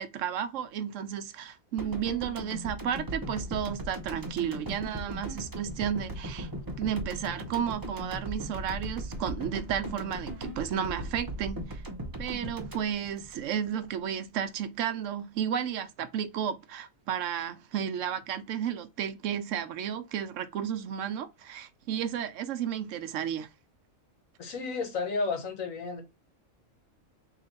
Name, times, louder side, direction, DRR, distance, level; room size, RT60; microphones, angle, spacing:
voice 1, 0.0-6.5 6.8-11.8 12.2-23.5, right 9 dB, 75° right, 0.9 m, -33 dB
sound 1, 1.8-14.0 14.2-14.4, right 1 dB, 25° right, 0.5 m, -38 dB
voice 2, 24.4-26.0, left 4 dB, 80° left, 1.5 m, -32 dB
3.2 x 2.9 x 3.9 m
omnidirectional pair, 1.4 m